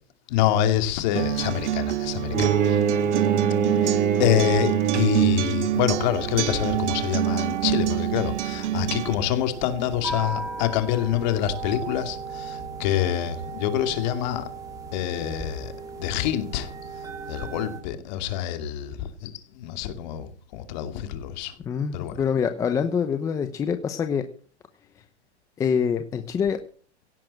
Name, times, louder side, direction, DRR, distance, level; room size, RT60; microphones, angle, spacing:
voice 1, 0.3-2.8 3.8-14.5 14.9-15.7 16.0-16.7 17.3-21.5 21.9-22.1, left 11 dB, 40° left, 2.5 m, -26 dB
Acoustic guitar, 1.1-9.1, right 13 dB, 85° right, 0.7 m, -27 dB
Bowed string instrument, 2.3-5.6, right 7 dB, 25° right, 2.4 m, -23 dB
sound 1, 5.7-17.8, right 4 dB, 10° right, 3.5 m, -36 dB
voice 2, 21.6-24.2 25.6-26.6, left 7 dB, 10° left, 0.7 m, -25 dB
17.0 x 7.5 x 7.7 m
hypercardioid pair, 155°, 34 cm